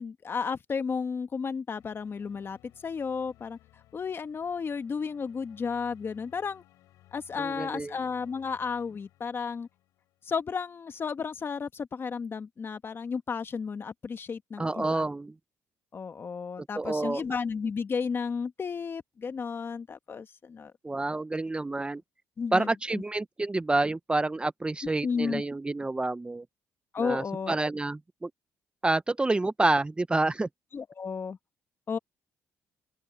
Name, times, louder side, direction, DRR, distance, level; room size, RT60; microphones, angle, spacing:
voice 1, 0.0-3.6 3.9-6.6 7.1-9.7 10.2-15.0 15.9-20.7 22.4-23.0 25.0-25.4 26.9-27.5 30.7-31.4 31.9-32.0, left 5 dB, 40° left, 1.5 m, -33 dB
sound 1, 1.8-10.6, left 15 dB, 85° left, 3.0 m, -60 dB
voice 2, 7.4-7.9 14.6-15.3 16.6-17.2 20.8-22.0 22.5-26.4 27.0-28.3 28.8-30.5, right 2 dB, 15° right, 0.7 m, -28 dB
open air
cardioid pair, 75°, 6 cm